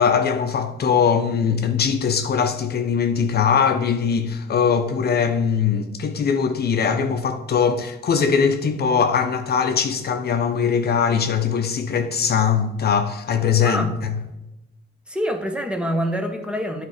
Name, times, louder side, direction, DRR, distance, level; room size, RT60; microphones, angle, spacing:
voice 1, 0.0-14.1, left 6 dB, 55° left, 0.8 m, -21 dB
voice 2, 13.6-13.9 15.1-16.9, equal, 5° right, 1.0 m, -25 dB
9.3 x 3.4 x 4.9 m
cardioid pair, 90°, 20 cm